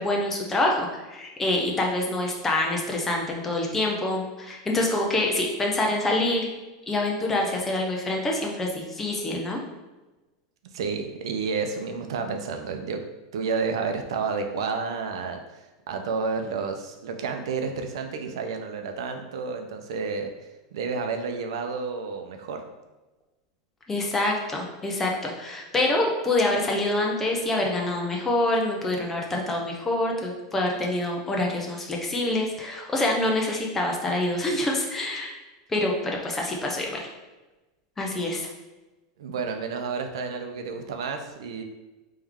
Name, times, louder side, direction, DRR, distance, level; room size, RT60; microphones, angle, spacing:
voice 1, 0.0-6.5 6.9-9.6 23.9-35.3 35.7-37.1 38.0-38.5, left 2 dB, 10° left, 0 dB, 0.5 m, -26 dB
voice 2, 10.7-13.0 13.3-20.3 20.7-22.6 39.2-41.6, right 5 dB, 85° right, 5 dB, 0.6 m, -30 dB
3.5 x 3.1 x 3.5 m, 1.1 s
supercardioid pair, 170°, 3 cm